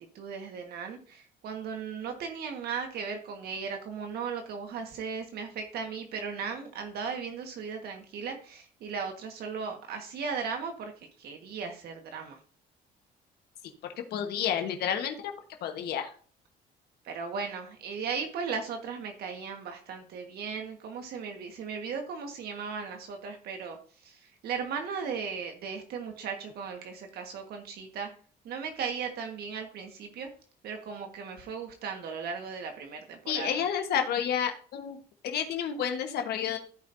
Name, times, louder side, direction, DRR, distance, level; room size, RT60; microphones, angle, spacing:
voice 1, 0.1-10.9 11.2-12.4 17.0-23.8 24.0-28.1 28.4-30.3 30.6-33.6, right 6 dB, 70° right, 4 dB, 1.5 m, -37 dB
voice 2, 14.1-15.3 15.6-16.1 33.3-35.0 35.2-36.6, left 8 dB, 70° left, 5 dB, 1.3 m, -30 dB
15.0 x 5.3 x 2.7 m, 0.43 s
cardioid pair, 110°, 17 cm